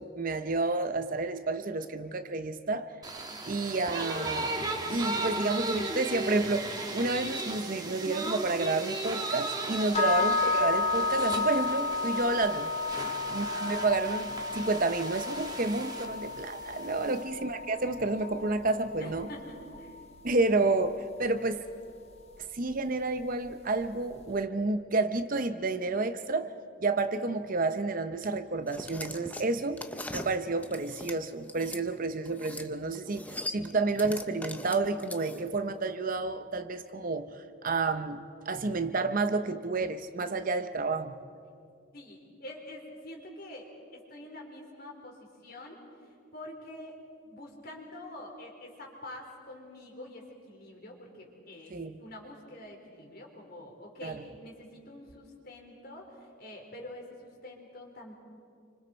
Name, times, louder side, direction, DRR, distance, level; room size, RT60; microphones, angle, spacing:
voice 1, 0.0-2.9 3.4-4.5 4.9-12.7 13.3-19.3 20.2-21.6 22.5-26.5 26.8-29.9 30.1-37.3 37.6-41.1 51.7-52.0 54.0-54.2, right 3 dB, 45° right, 9 dB, 0.8 m, -30 dB
sound 1, 3.0-17.2, right 2 dB, 20° right, 1.6 m, -36 dB
sound 2, 9.9-20.0, left 3 dB, 30° left, 1.8 m, -32 dB
voice 2, 19.0-20.0 41.9-43.7 43.9-45.8 46.3-46.9 47.2-58.1, left 1 dB, 50° left, 1 dB, 4.0 m, -46 dB
sound 3, 28.7-31.8 32.2-32.7 32.9-35.6, left 1 dB, 5° left, 0.7 m, -41 dB
28.5 x 25.5 x 4.4 m, 2.3 s
head